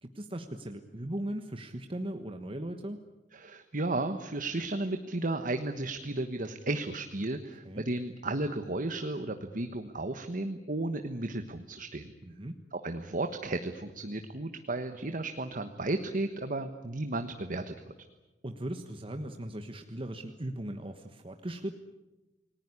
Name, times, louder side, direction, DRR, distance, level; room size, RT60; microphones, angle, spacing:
voice 1, 0.0-3.0 7.6-7.8 12.2-12.6 18.4-21.8, right 1 dB, 30° right, 6 dB, 1.3 m, -38 dB
voice 2, 3.3-12.1 12.7-17.9, right 2 dB, 50° right, 7 dB, 1.3 m, -34 dB
29.0 x 19.5 x 9.7 m, 1.1 s
head